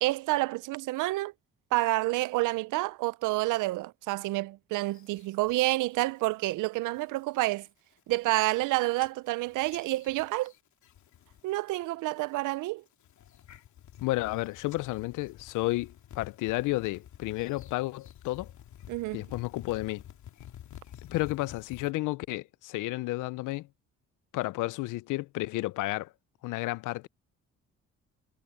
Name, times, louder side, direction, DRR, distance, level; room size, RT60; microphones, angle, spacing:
voice 1, 0.0-1.3 1.7-7.7 8.1-10.5 11.4-12.8 18.9-19.2, right 19 dB, 90° right, 0.5 m, -29 dB
sound 1, 4.9-5.7 6.1-6.5 6.8-7.2 7.7-7.8 8.0-8.7 9.0-11.6 11.8-12.3 12.9-21.9, left 10 dB, 70° left, 2.6 m, -50 dB
voice 2, 14.0-18.5 19.1-20.0 21.1-23.7 24.3-26.1 26.4-27.1, left 19 dB, 90° left, 0.5 m, -32 dB
cardioid pair, 90°, 30 cm